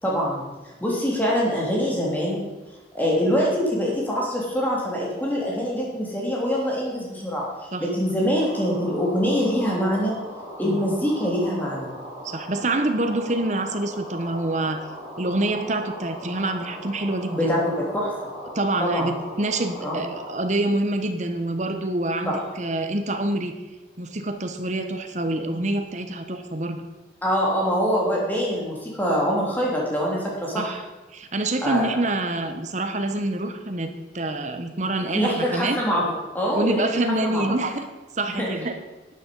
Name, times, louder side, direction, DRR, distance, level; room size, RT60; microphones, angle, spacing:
voice 1, 0.0-2.4 2.9-7.4 7.8-10.1 10.6-11.9 17.4-18.3 18.8-19.1 19.8-20.0 22.3-22.4 27.2-30.8 31.6-31.9 35.0-37.0 37.3-37.4 38.4-38.5, equal, 10° left, -4 dB, 3.1 m, -24 dB
sound 1, 8.4-20.3, equal, 15° right, 4.4 m, -39 dB
voice 2, 12.2-14.8 15.2-17.6 18.5-23.5 24.0-26.8 30.5-30.8 31.1-35.8 36.5-37.9 38.2-38.7, right 2 dB, 40° right, 7 dB, 1.1 m, -26 dB
11.5 x 9.1 x 5.4 m, 1.1 s
head